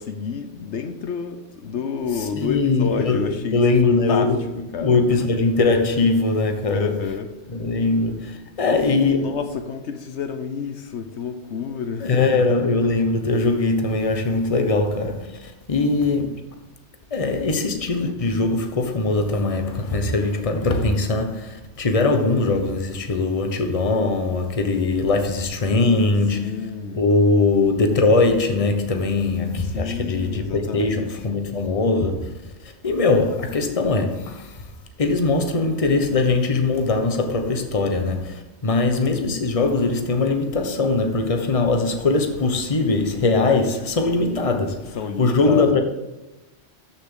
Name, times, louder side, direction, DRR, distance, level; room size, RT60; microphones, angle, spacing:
voice 1, 0.0-5.0 6.7-7.3 8.6-12.5 26.2-27.0 29.6-31.3 44.8-45.8, left 6 dB, 75° left, 1.1 m, -30 dB
voice 2, 2.2-4.4 4.8-6.9 7.5-9.6 12.0-16.4 17.1-26.6 26.9-34.6 35.0-45.8, left 3 dB, 30° left, 1.1 m, -21 dB
13.0 x 7.0 x 3.8 m
omnidirectional pair, 1.2 m